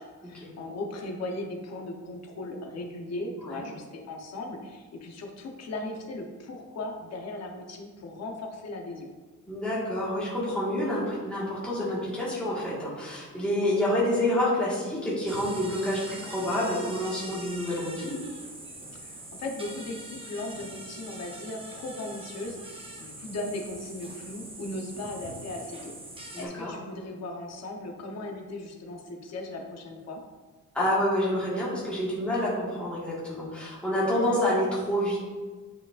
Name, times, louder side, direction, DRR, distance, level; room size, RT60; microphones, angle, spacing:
voice 1, 0.0-9.1 18.9-30.2, left 2 dB, 50° left, 2 dB, 0.9 m, -37 dB
voice 2, 9.5-18.2 26.3-26.7 30.7-35.2, left 1 dB, 5° left, -8 dB, 1.6 m, -28 dB
sound 1, 15.3-26.5, right 1 dB, 15° right, 0.8 m, -43 dB
8.7 x 5.0 x 2.5 m, 1.4 s
wide cardioid pair, 175°, 33 cm